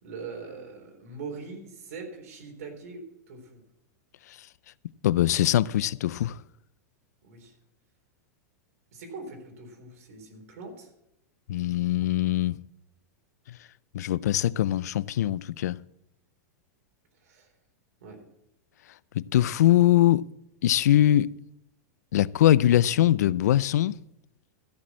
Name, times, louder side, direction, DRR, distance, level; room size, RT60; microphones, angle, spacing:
voice 1, 0.0-3.6 7.2-7.5 8.9-10.9 17.2-17.5 18.0-18.2, right 4 dB, 70° right, 3.9 m, -42 dB
voice 2, 5.0-6.4 11.5-12.6 13.9-15.8 19.2-20.2 20.6-21.3 22.1-24.0, left 12 dB, 90° left, 0.4 m, -22 dB
14.0 x 6.2 x 8.5 m
supercardioid pair, 155°, 9 cm